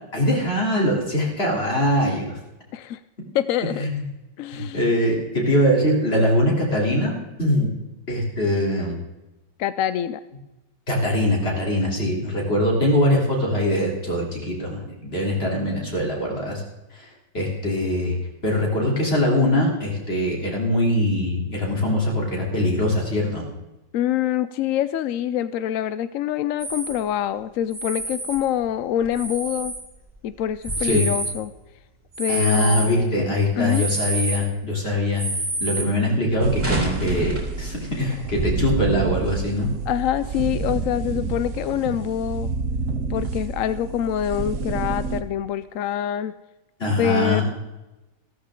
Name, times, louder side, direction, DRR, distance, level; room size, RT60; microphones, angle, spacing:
voice 1, 0.1-2.4 3.8-4.0 4.5-7.1 7.4-7.7 8.1-9.0 10.9-16.6 16.9-18.2 18.4-23.4 30.8-31.1 32.3-35.2 35.6-39.7 46.8-47.4, left 1 dB, 35° left, -2 dB, 3.6 m, -22 dB
voice 2, 3.3-3.9 4.4-4.9 9.6-10.2 23.9-29.7 30.2-31.5 32.2-33.2 33.6-33.8 39.9-42.5 43.1-46.3 47.0-47.4, left 10 dB, 75° left, 14 dB, 0.7 m, -25 dB
sound 1, 26.6-27.0 27.7-28.4 29.0-29.8 30.5-31.4 32.1-32.9 33.7-34.4 35.2-35.9 36.3-37.5 38.0-38.1 38.4-38.8 39.3-39.7, right 2 dB, 5° right, 3.8 m, -28 dB
sound 2, 36.4-45.2, right 4 dB, 55° right, 1.0 m, -28 dB
15.0 x 13.5 x 3.7 m, 1.0 s
omnidirectional pair, 1.9 m